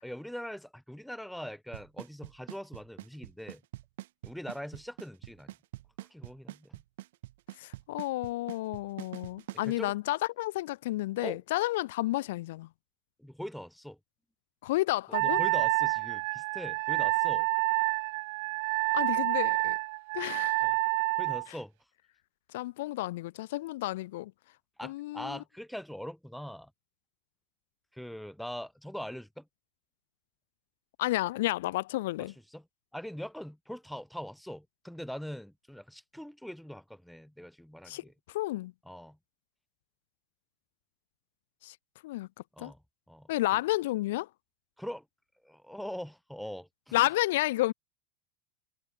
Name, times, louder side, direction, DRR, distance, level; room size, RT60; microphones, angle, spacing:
voice 1, 0.0-3.6 4.2-5.5 6.1-6.8 9.6-9.9 11.2-11.4 13.2-14.0 15.1-17.5 20.6-20.7 21.2-21.7 24.8-26.7 27.9-29.5 32.2-32.6 32.9-38.1 38.9-39.2 42.5-42.8 43.1-43.3 44.8-45.1 45.4-47.0, equal, ahead, 1.0 m, -42 dB
Drum kit / Snare drum / Bass drum, 1.7-9.7, right 16 dB, 80° right, 3.6 m, -43 dB
voice 2, 7.6-12.7 14.6-15.4 18.9-19.8 20.1-20.6 21.5-21.6 22.5-24.3 24.8-25.4 31.0-32.3 37.9-38.7 41.6-41.8 42.0-42.3 42.6-42.7 43.3-44.3 46.9-47.7, left 17 dB, 75° left, 0.3 m, -31 dB
Wind instrument woodwind instrument, 15.1-21.5, right 28 dB, 60° right, 0.6 m, -28 dB
supercardioid pair, 145°, 0 cm